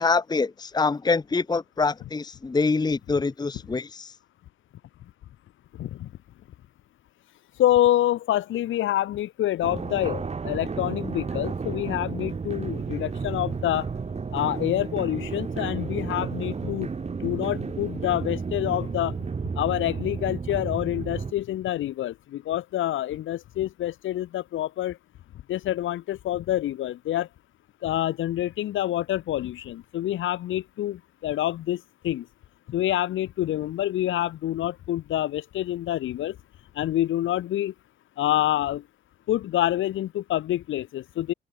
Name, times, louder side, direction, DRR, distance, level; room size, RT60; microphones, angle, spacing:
voice 1, 0.0-4.1, left 4 dB, 20° left, 1.0 m, -25 dB
voice 2, 5.7-6.1 7.6-13.9 14.3-16.9 17.2-19.1 19.6-25.0 25.5-27.3 27.8-32.3 32.7-36.4 36.7-37.7 38.2-38.8 39.3-41.3, left 13 dB, 80° left, 4.6 m, -27 dB
sound 1, 9.6-21.3, right 5 dB, 30° right, 2.7 m, -32 dB
cardioid pair, 90°, 20 cm